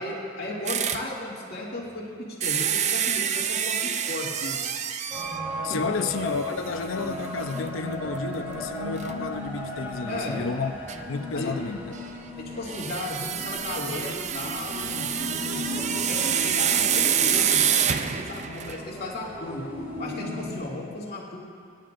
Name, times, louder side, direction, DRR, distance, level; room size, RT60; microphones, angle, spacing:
voice 1, 0.0-4.6 5.7-5.8 10.0-10.6 11.3-11.5 12.4-15.1 15.5-19.6 20.0-21.4, left 1 dB, 50° left, -5 dB, 2.4 m, -35 dB
sound 1, 0.7-1.1 2.4-5.4 6.1-6.2 6.7-6.8 9.0-9.1 10.9-11.0 12.7-18.9, right 9 dB, 35° right, 0.4 m, -26 dB
sound 2, 5.1-20.6, left 1 dB, 10° right, 3.4 m, -36 dB
voice 2, 5.6-10.7 11.1-11.9, left 4 dB, 70° left, 8 dB, 0.6 m, -31 dB
24.5 x 10.0 x 2.6 m, 2.2 s
head